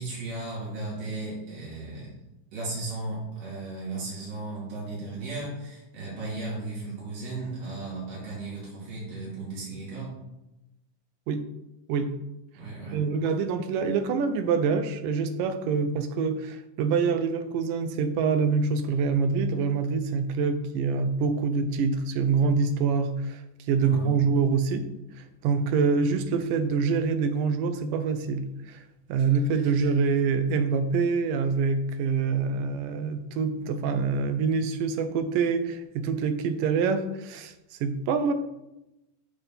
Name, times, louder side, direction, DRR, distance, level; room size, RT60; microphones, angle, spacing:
voice 1, 0.0-2.1 2.5-10.1 12.6-13.1 23.8-24.2, right 2 dB, 50° right, -7 dB, 3.7 m, -35 dB
voice 2, 12.9-23.4 23.7-24.9 25.4-28.8 29.1-38.3, right 5 dB, 90° right, 10 dB, 2.3 m, -25 dB
6.9 x 5.3 x 5.5 m, 0.94 s
omnidirectional pair, 3.7 m